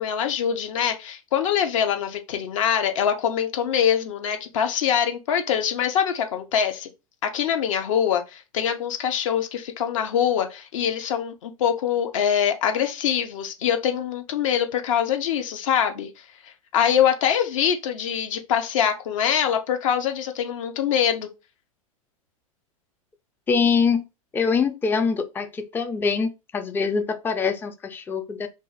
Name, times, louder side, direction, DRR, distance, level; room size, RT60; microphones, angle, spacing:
voice 1, 0.0-6.9 7.2-16.1 16.7-21.3, left 8 dB, 60° left, 0.6 m, -24 dB
voice 2, 23.5-24.1 24.3-28.5, left 5 dB, 10° left, 0.3 m, -24 dB
2.5 x 2.4 x 3.9 m
figure-of-eight pair, 90°, 18 cm